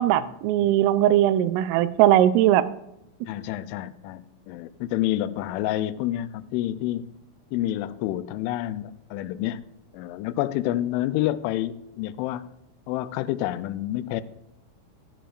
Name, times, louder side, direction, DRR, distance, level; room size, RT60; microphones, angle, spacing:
voice 1, 0.0-2.7, right 12 dB, 85° right, 3.2 m, -19 dB
voice 2, 3.3-7.1 7.5-9.6 9.9-12.5 12.9-14.2, left 14 dB, 85° left, 2.8 m, -28 dB
15.0 x 10.0 x 2.5 m
omnidirectional pair, 5.7 m